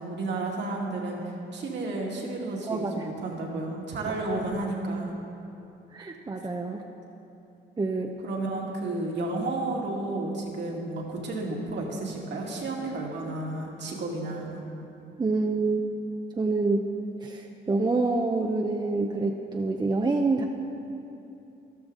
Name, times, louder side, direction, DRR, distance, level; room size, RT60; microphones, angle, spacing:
voice 1, 0.0-5.2 8.2-14.6, right 2 dB, 60° right, -1 dB, 2.3 m, -32 dB
voice 2, 2.7-3.1 5.9-6.8 7.8-8.1 15.2-15.8 16.4-16.9 17.2-20.5, right 3 dB, 20° right, 2 dB, 0.7 m, -27 dB
13.5 x 12.5 x 3.9 m, 2.8 s
cardioid pair, 90°, 20 cm